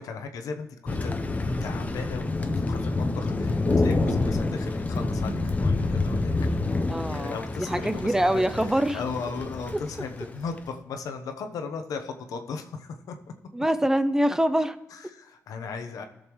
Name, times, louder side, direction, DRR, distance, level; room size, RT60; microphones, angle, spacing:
voice 1, 0.0-6.5 7.1-8.4 8.8-13.2 14.9-16.0, left 5 dB, 90° left, 6 dB, 1.0 m, -37 dB
Thunder, 0.9-10.6, left 2 dB, 25° left, 0.7 m, -27 dB
voice 2, 6.9-9.0 13.5-14.8, right 1 dB, 10° right, 12 dB, 0.5 m, -25 dB
16.0 x 6.6 x 3.1 m, 1.0 s
cardioid pair, 100°, 6 cm